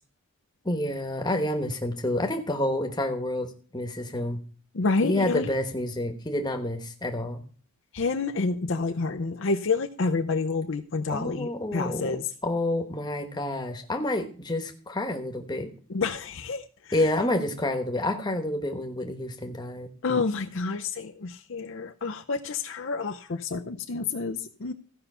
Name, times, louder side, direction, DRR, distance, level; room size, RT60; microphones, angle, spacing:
voice 1, 0.6-4.4 5.0-7.4 11.1-12.2 12.4-15.7 16.9-19.9, left 1 dB, 20° left, 5 dB, 1.2 m, -29 dB
voice 2, 4.7-5.5 7.9-12.3 15.9-17.0 20.0-24.7, left 4 dB, 55° left, 5 dB, 0.6 m, -29 dB
15.0 x 5.6 x 5.5 m, 0.41 s
head